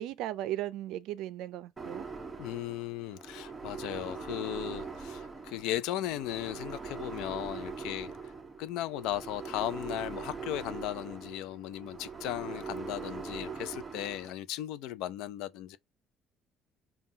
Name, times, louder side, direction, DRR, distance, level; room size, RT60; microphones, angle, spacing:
voice 1, 0.0-2.0, right 13 dB, 75° right, 0.4 m, -36 dB
sound 1, 1.8-14.3, right 5 dB, 15° right, 0.7 m, -42 dB
voice 2, 2.4-8.3 8.6-15.8, left 13 dB, 85° left, 0.4 m, -36 dB
5.4 x 2.3 x 2.7 m
cardioid pair, 155°, 0 cm